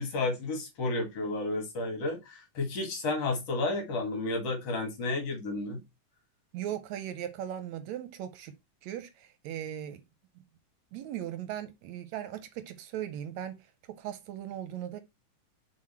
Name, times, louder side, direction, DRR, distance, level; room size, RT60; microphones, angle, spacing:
voice 1, 0.0-5.8, left 2 dB, 55° left, 3.0 m, -32 dB
voice 2, 6.5-8.5 8.8-10.0 10.9-13.6 13.9-15.0, right 11 dB, 80° right, 1.8 m, -38 dB
6.4 x 4.3 x 4.4 m
omnidirectional pair, 3.5 m